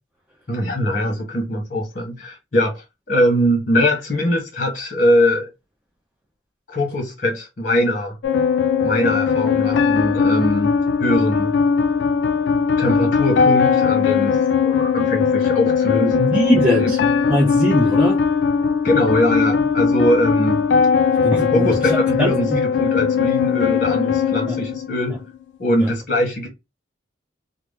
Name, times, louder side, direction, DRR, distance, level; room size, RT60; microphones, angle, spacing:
voice 1, 0.5-5.5 6.7-8.2 8.8-10.7 11.0-11.6 12.8-16.3 16.8-16.9 18.8-20.7 21.5-25.2 25.6-26.5, left 1 dB, 45° left, 1.1 m, -21 dB
sound 1, 8.2-25.2, left 6 dB, 70° left, 0.4 m, -19 dB
voice 2, 16.2-17.0 17.3-18.2 21.2-22.6 24.5-24.6 25.8-25.9, equal, 5° right, 0.5 m, -20 dB
2.8 x 2.0 x 3.3 m
head